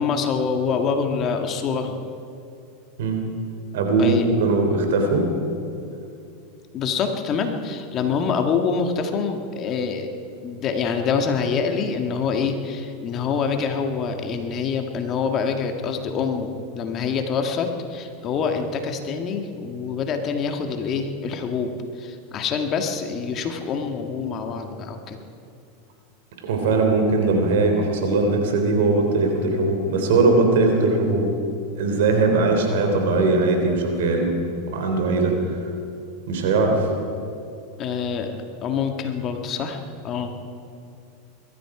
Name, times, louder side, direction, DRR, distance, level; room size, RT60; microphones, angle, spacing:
voice 1, 0.0-2.0 4.0-4.3 6.7-10.1 10.4-21.7 22.0-25.2 37.8-40.3, left 5 dB, 40° left, 5 dB, 1.8 m, -26 dB
voice 2, 3.7-5.3 26.4-31.3 31.8-34.3 34.7-35.3 36.3-36.9, right 3 dB, 75° right, 3 dB, 3.3 m, -20 dB
22.0 x 13.0 x 5.0 m, 2.6 s
hypercardioid pair, 105°, 0 cm